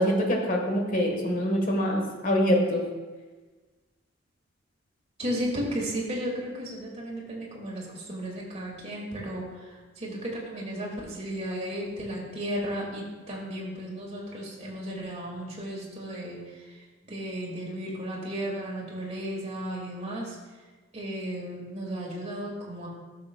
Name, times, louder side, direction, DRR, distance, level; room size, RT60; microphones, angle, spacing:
voice 1, 0.0-2.8, equal, 45° left, 2 dB, 1.2 m, -25 dB
voice 2, 5.2-16.4 17.0-20.4 20.9-22.9, equal, 35° right, -3 dB, 1.9 m, -34 dB
12.0 x 6.7 x 2.2 m, 1.3 s
head